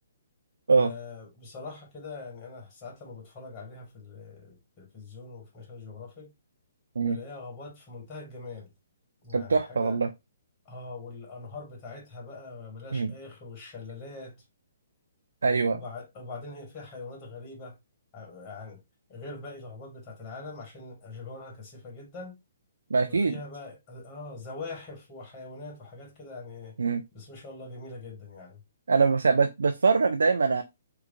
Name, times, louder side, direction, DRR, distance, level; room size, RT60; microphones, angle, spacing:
voice 1, 0.8-6.3 7.0-8.7 9.2-10.0 10.7-14.4 15.7-17.8 18.1-18.8 19.1-22.4 23.1-26.8 27.1-28.6, left 3 dB, 25° left, 1.9 m, -42 dB
voice 2, 9.3-10.1 12.9-13.1 15.4-15.8 22.9-23.4 26.8-27.0 28.9-30.6, right 4 dB, 85° right, 0.4 m, -23 dB
3.2 x 2.3 x 4.0 m
hypercardioid pair, 145°, 0 cm